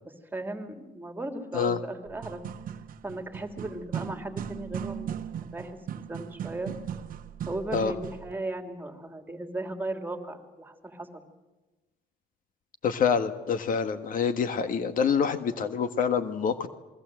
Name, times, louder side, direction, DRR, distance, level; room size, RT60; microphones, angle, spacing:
voice 1, 0.3-2.4 3.0-5.2 5.4-6.7 7.5-11.2, right 2 dB, 10° right, 6 dB, 3.1 m, -36 dB
sound 1, 2.1-8.3, right 9 dB, 55° right, 1.2 m, -38 dB
voice 2, 12.8-16.7, left 6 dB, 55° left, 10 dB, 1.6 m, -26 dB
28.0 x 22.0 x 7.8 m, 1.1 s
cardioid pair, 110°, 17 cm